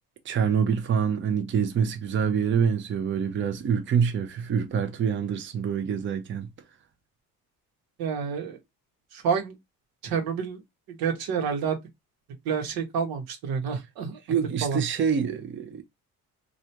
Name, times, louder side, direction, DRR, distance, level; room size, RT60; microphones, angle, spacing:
voice 1, 0.2-6.5 14.2-15.8, right 7 dB, 35° right, 0.6 m, -26 dB
voice 2, 8.0-8.6 9.1-9.5 10.0-10.6 10.9-11.8 12.4-14.2 14.6-14.8, right 6 dB, 85° right, 1.1 m, -28 dB
3.2 x 2.4 x 2.8 m
cardioid pair, 120°, 35 cm